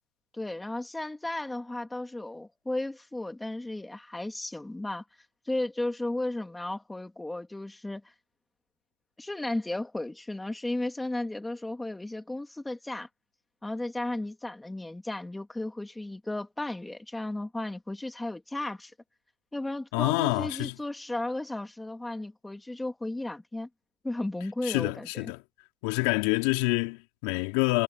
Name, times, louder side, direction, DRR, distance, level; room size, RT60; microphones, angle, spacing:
voice 1, 0.3-5.0 5.4-8.1 9.2-13.1 13.6-18.9 19.5-23.7 24.0-25.3, left 2 dB, 5° left, 2.7 m, -34 dB
voice 2, 19.9-20.7 24.6-25.4 25.8-27.8, left 24 dB, 65° left, 3.9 m, -27 dB
supercardioid pair, 135°, 0 cm